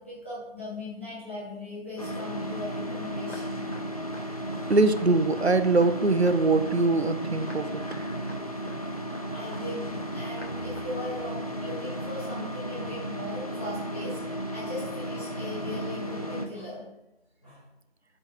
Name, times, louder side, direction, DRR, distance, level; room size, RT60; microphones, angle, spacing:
voice 1, 0.0-3.6 8.9-9.0 9.3-14.2 14.5-16.8 17.4-17.6, left 2 dB, 10° left, -9 dB, 2.1 m, -38 dB
sound 1, 2.0-16.5, equal, 35° left, 1.0 m, -34 dB
sound 2, 3.3-3.5 3.7-3.8 4.1-4.2 4.5-4.7 5.0-5.1 5.4-5.5 5.8-5.9 6.2-6.4 6.6-6.8 7.0-7.2 7.5-7.6 7.9-8.0 8.3-8.4 8.7-8.8 9.1-9.2 9.5-9.6 9.9-10.1 10.4-10.5 10.8-10.9, left 1 dB, 85° left, 3.5 m, -45 dB
voice 2, 4.7-7.8, right 3 dB, 85° right, 12 dB, 0.8 m, -23 dB
9.5 x 7.3 x 3.5 m, 0.91 s
figure-of-eight pair, 175°, 31 cm